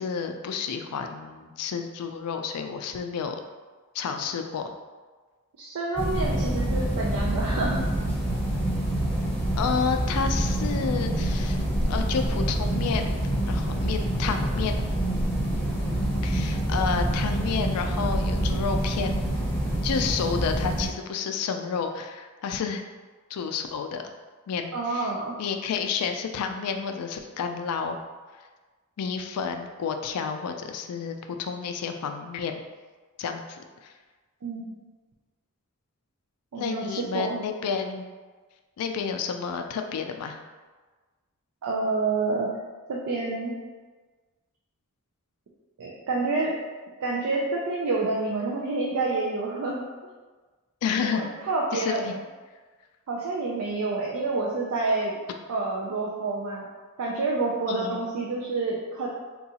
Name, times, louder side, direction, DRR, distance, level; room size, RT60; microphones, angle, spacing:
voice 1, 0.0-3.4 3.9-4.6 9.6-11.6 11.9-14.8 16.2-19.1 19.8-22.8 23.3-24.0 24.5-28.0 29.0-32.6 33.2-33.9 36.5-38.0 38.8-40.4 50.8-51.3 51.7-52.1 57.7-58.0, left 6 dB, 85° left, 5 dB, 0.3 m, -30 dB
voice 2, 5.6-7.8 24.7-25.3 34.4-34.8 36.5-37.4 41.6-42.5 42.9-43.5 45.8-46.5 47.0-49.8 51.0-52.0 53.1-55.1 55.5-56.6 57.0-59.1, right 3 dB, 75° right, -3 dB, 0.4 m, -28 dB
sound 1, 6.0-20.9, right 1 dB, 5° left, 0.6 m, -26 dB
3.8 x 2.3 x 2.8 m, 1.4 s
head